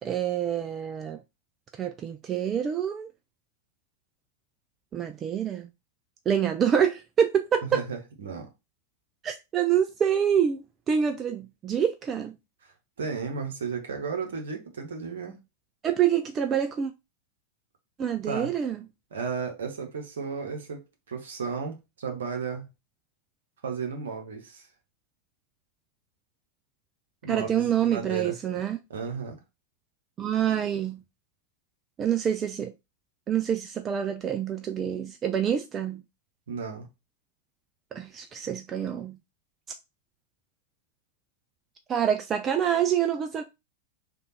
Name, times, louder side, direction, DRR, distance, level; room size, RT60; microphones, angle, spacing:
voice 1, 0.0-1.2 1.8-3.1 4.9-5.7 6.3-7.8 9.2-12.3 15.8-16.9 18.0-18.8 27.3-28.8 30.2-31.0 32.0-32.7 33.3-36.0 37.9-39.2 39.7-39.8 41.9-43.4, right 8 dB, 25° right, 0.3 m, -26 dB
voice 2, 7.6-8.5 12.6-15.4 18.2-18.5 19.1-22.7 23.6-24.7 27.2-28.4 28.9-29.4 36.5-36.9, right 5 dB, 65° right, 1.0 m, -34 dB
3.4 x 2.4 x 4.1 m
figure-of-eight pair, 90°, 0 cm